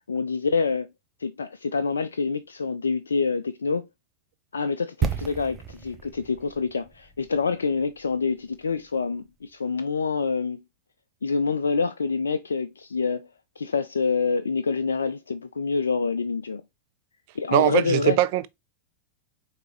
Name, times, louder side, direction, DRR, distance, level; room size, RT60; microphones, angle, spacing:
voice 1, 0.1-0.9 1.2-3.9 4.5-10.6 11.2-13.3 13.6-16.6 17.4-18.2, left 4 dB, 70° left, 0.3 m, -26 dB
sound 1, 5.0-8.9 9.2-9.3, right 7 dB, 20° right, 0.7 m, -33 dB
voice 2, 17.5-18.5, right 16 dB, 45° right, 0.4 m, -21 dB
5.1 x 3.3 x 3.0 m
figure-of-eight pair, 90°, 0 cm